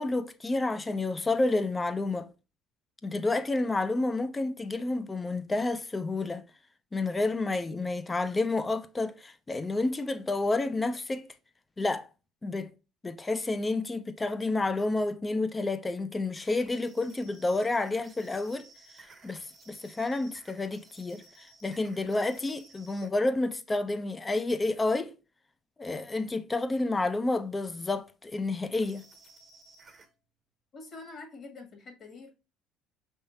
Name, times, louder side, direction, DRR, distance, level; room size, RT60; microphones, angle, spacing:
voice 1, 0.0-2.3 3.0-6.5 6.9-11.3 11.8-12.1 12.4-12.7 13.0-18.7 19.2-25.1 25.8-29.0, left 2 dB, 20° left, 0.6 m, -30 dB
sound 1, 16.3-23.1 28.7-30.1, right 3 dB, 30° right, 0.9 m, -56 dB
voice 2, 30.7-32.3, left 3 dB, 45° left, 1.7 m, -46 dB
5.4 x 3.6 x 2.7 m
supercardioid pair, 90°, 0 cm